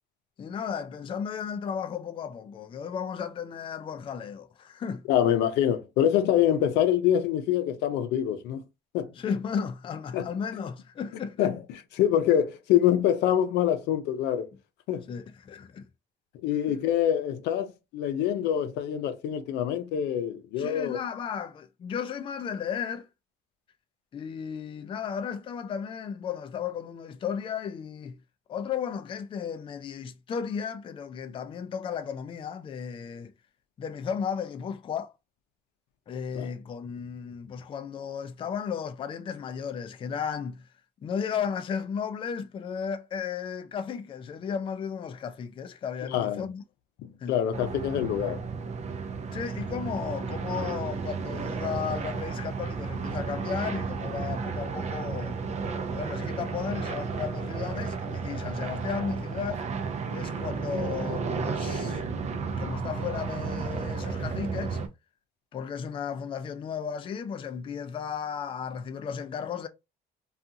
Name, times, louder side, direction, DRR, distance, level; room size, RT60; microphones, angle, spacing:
voice 1, 0.4-5.0 9.2-11.5 15.1-15.8 20.6-23.1 24.1-28.2 28.5-33.3 33.8-35.1 36.1-40.7 41.0-46.6 47.2-47.3 49.3-55.4 55.9-59.6 60.1-62.0 62.6-64.8 65.5-69.7, left 7 dB, 30° left, 0.4 m, -34 dB
voice 2, 5.1-8.6 8.9-9.1 10.1-10.3 11.4-14.5 14.9-15.1 16.3-21.0 36.4-36.5 46.0-46.4 47.0-48.4, left 10 dB, 85° left, 0.5 m, -25 dB
sound 1, 47.5-64.9, right 5 dB, 40° right, 0.5 m, -33 dB
2.5 x 2.4 x 2.7 m
cardioid pair, 110°, 17 cm